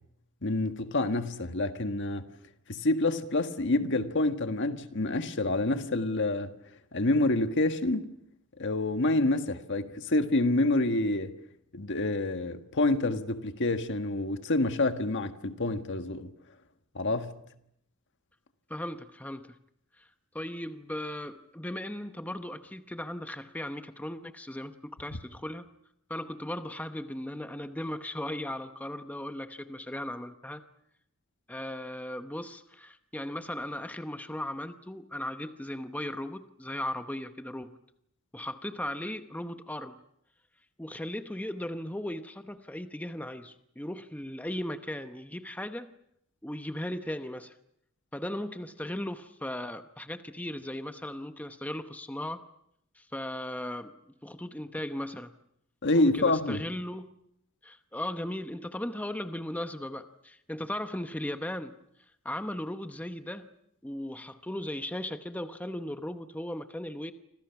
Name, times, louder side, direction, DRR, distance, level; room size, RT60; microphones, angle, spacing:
voice 1, 0.4-2.3 2.7-6.5 6.9-8.1 8.6-11.3 11.7-16.3 16.9-17.3 55.8-56.6, left 2 dB, 55° left, 1.5 m, -27 dB
voice 2, 18.7-19.6 20.0-20.1 20.3-25.7 26.1-30.6 31.5-37.8 38.3-40.0 40.8-45.9 46.4-47.5 48.1-52.4 52.9-55.3 55.9-57.2 57.6-61.8 62.2-63.5 63.8-67.1, left 1 dB, 5° left, 0.9 m, -37 dB
29.5 x 26.0 x 5.9 m
head